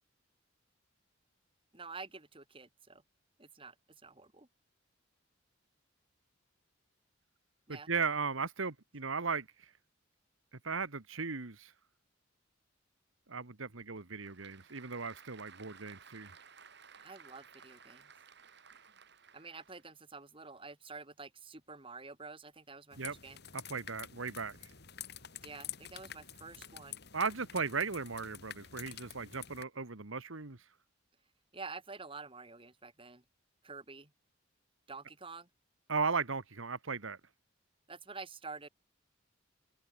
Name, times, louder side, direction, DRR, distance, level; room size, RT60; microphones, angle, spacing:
voice 1, 1.7-3.0 3.4-3.7 4.0-4.5 7.7-7.9 17.0-18.1 19.3-23.4 25.4-27.0 31.5-33.2 33.6-34.1 34.9-35.5 37.9-38.7, right 4 dB, 25° right, 2.9 m, -48 dB
voice 2, 7.7-9.7 10.6-11.7 13.3-16.3 23.0-23.1 23.5-24.6 27.1-30.6 35.9-37.2, right 5 dB, 75° right, 1.6 m, -36 dB
Applause / Crowd, 13.8-19.9, right 6 dB, 55° right, 6.8 m, -57 dB
sound 1, 22.9-29.6, left 10 dB, 55° left, 4.0 m, -48 dB
head